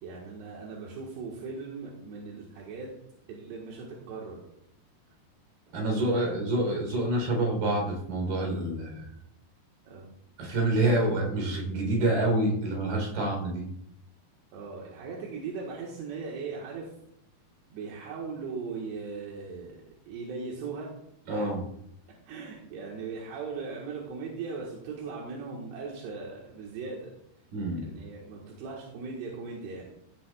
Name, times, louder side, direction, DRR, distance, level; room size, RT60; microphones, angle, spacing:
voice 1, 0.0-2.9 3.3-4.4 5.9-6.3 9.9-10.1 14.5-16.9 17.7-20.9 21.3-21.5 22.3-27.1 27.8-29.9, right 4 dB, 80° right, -3 dB, 3.7 m, -39 dB
voice 2, 5.7-9.1 10.4-13.7 21.3-21.6 27.5-27.9, right 1 dB, 60° right, 0 dB, 5.6 m, -27 dB
15.5 x 11.0 x 2.4 m, 0.75 s
omnidirectional pair, 4.8 m